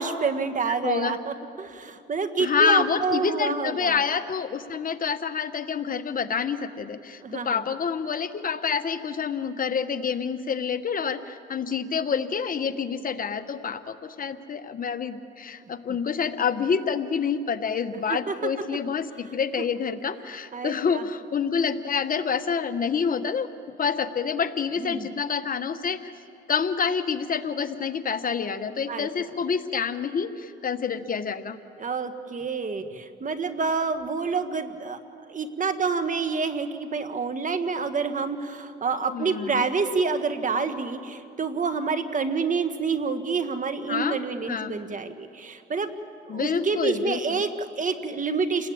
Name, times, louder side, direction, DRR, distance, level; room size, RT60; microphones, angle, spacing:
voice 1, 0.0-3.9 7.2-7.6 18.1-18.3 20.5-21.0 24.8-25.1 28.9-29.1 31.8-35.0 35.3-45.9 46.3-48.7, right 4 dB, 40° right, 8 dB, 1.7 m, -28 dB
voice 2, 0.7-1.2 2.4-23.5 23.8-26.1 26.5-31.6 39.1-39.7 43.9-44.2 44.5-44.7 46.3-47.4, left 6 dB, 45° left, 10 dB, 1.2 m, -27 dB
29.0 x 20.0 x 8.7 m, 2.5 s
cardioid pair, 90°, 20 cm